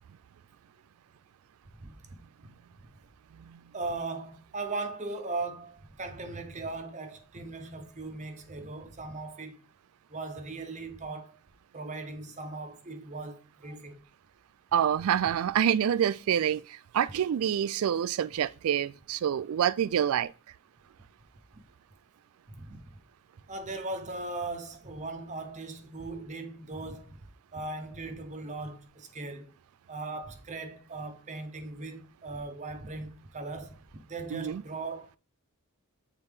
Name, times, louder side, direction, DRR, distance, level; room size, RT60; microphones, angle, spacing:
voice 1, 3.7-9.6 10.1-11.4 11.7-14.0 22.5-22.8 23.5-27.2 27.5-29.5 29.9-33.7 34.1-35.2, right 3 dB, 35° right, 0.9 m, -38 dB
voice 2, 14.7-20.3 34.3-34.6, right 9 dB, 75° right, 0.3 m, -27 dB
7.9 x 4.0 x 3.6 m
head